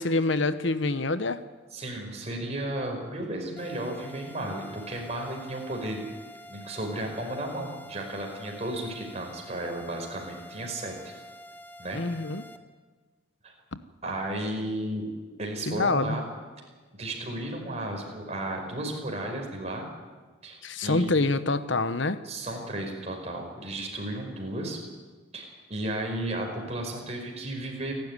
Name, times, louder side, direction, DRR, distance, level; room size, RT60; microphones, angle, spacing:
voice 1, 0.0-1.4 11.9-12.4 15.7-16.2 20.6-22.2, left 3 dB, 60° left, 12 dB, 1.1 m, -26 dB
voice 2, 1.7-6.0 6.4-11.1 11.8-12.0 13.4-13.5 14.0-15.1 15.4-16.3 17.0-19.9 20.4-21.1 22.2-24.8 25.3-27.9, right 1 dB, 30° right, 1 dB, 5.2 m, -34 dB
sound 1, 3.6-12.6, equal, 10° left, 1.1 m, -47 dB
28.5 x 12.5 x 9.9 m, 1.4 s
head